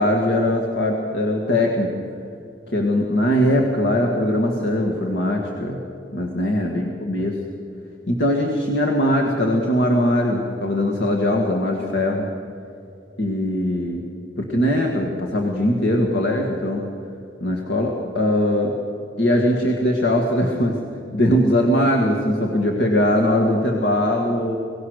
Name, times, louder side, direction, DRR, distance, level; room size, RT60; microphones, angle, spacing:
voice 1, 0.0-2.0 2.7-5.8 6.1-7.4 8.1-12.3 13.2-14.0 14.4-16.8 17.4-18.7 19.2-20.8 21.1-24.6, left 1 dB, 70° left, 0 dB, 1.9 m, -20 dB
24.0 x 17.5 x 6.6 m, 2.6 s
head